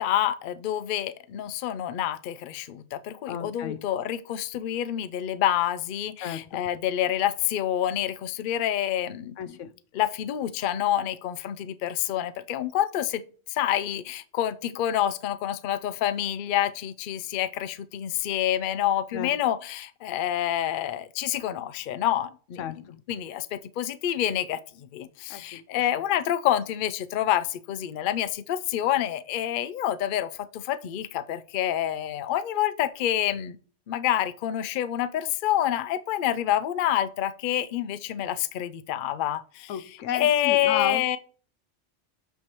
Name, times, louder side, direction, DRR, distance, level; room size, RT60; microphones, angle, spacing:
voice 1, 0.0-9.6 9.9-13.2 13.5-22.6 23.1-33.6 33.9-39.8 40.1-41.2, left 11 dB, 60° left, 0.5 m, -27 dB
voice 2, 3.3-3.8 6.2-6.6 9.4-9.7 19.1-19.3 22.6-23.0 25.3-25.6 39.7-41.2, left 9 dB, 85° left, 1.0 m, -33 dB
12.5 x 4.7 x 3.0 m
omnidirectional pair, 1.3 m